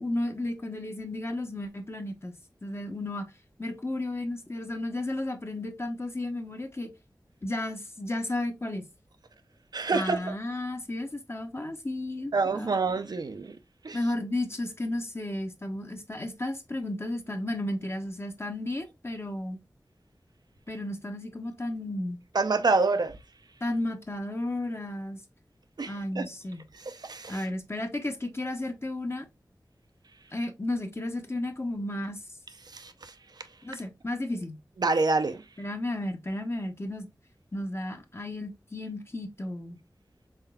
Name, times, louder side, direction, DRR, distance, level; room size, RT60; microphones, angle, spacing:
voice 1, 0.0-3.2 3.6-6.9 7.4-8.8 9.9-12.8 13.9-19.6 20.7-22.2 23.6-25.2 25.9-26.7 27.3-29.3 30.3-32.2 33.6-34.6 35.6-37.1 37.5-39.8, left 1 dB, 35° left, 0.8 m, -33 dB
voice 2, 9.7-10.2 12.3-13.5 13.8-14.0 22.4-23.1 25.8-25.9 26.2-26.3 27.1-27.3 34.8-35.4, right 3 dB, 65° right, 0.4 m, -25 dB
3.6 x 3.4 x 2.2 m
cardioid pair, 45°, 8 cm